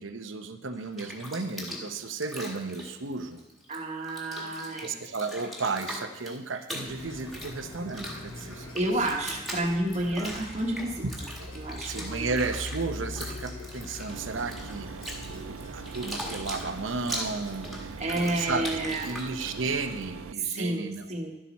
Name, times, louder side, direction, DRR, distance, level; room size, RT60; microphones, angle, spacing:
voice 1, 0.0-3.4 4.1-4.2 4.8-9.1 10.2-10.3 11.4-11.5 11.8-18.8 19.0-21.1, right 4 dB, 65° right, 8 dB, 0.8 m, -34 dB
Bathtub (filling or washing), 0.7-3.8 4.0-20.0, equal, ahead, 1.6 m, -40 dB
voice 2, 3.7-4.9 8.7-11.0 11.5-12.3 18.0-19.1 20.5-21.3, right 1 dB, 35° right, 1 dB, 1.2 m, -30 dB
sound 1, 6.8-18.9, left 1 dB, 85° left, 2.7 m, -43 dB
sound 2, 14.1-20.3, right 6 dB, 80° right, 0.4 m, -42 dB
11.5 x 10.5 x 4.2 m, 1.0 s
head